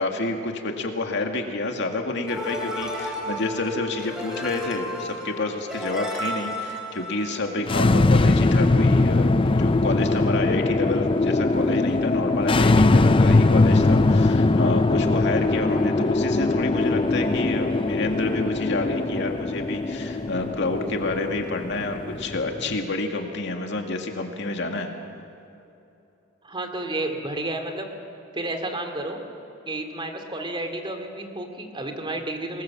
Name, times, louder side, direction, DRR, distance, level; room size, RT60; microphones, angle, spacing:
voice 1, 0.0-24.9, left 2 dB, 60° left, 3 dB, 2.2 m, -29 dB
sound 1, 2.3-7.8, equal, 5° right, 3.9 m, -33 dB
sound 2, 7.6-22.8, left 2 dB, 25° left, 0.5 m, -21 dB
voice 2, 26.4-27.9 28.3-29.2 29.7-32.6, right 2 dB, 25° right, 5 dB, 2.5 m, -31 dB
25.0 x 20.0 x 7.4 m, 2.9 s
head